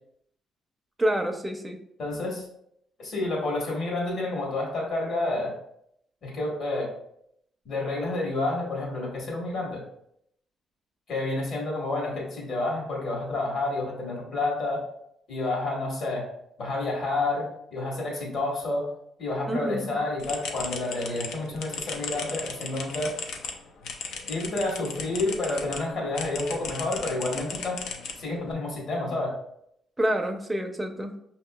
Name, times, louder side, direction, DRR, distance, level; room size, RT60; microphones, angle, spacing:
voice 1, 1.0-1.8 19.5-20.0 30.0-31.2, right 1 dB, 10° right, 3 dB, 0.5 m, -28 dB
voice 2, 2.0-2.5 3.0-5.5 6.2-6.9 7.6-9.8 11.1-14.8 15.3-16.2 16.6-17.5 17.7-18.8 19.2-23.1 24.3-27.8 28.2-29.3, left 2 dB, 65° left, -1 dB, 1.5 m, -29 dB
sound 1, 20.2-25.8 26.2-28.5, left 5 dB, 85° left, 0.5 m, -36 dB
5.6 x 2.8 x 2.3 m, 0.74 s
cardioid pair, 90°, 0 cm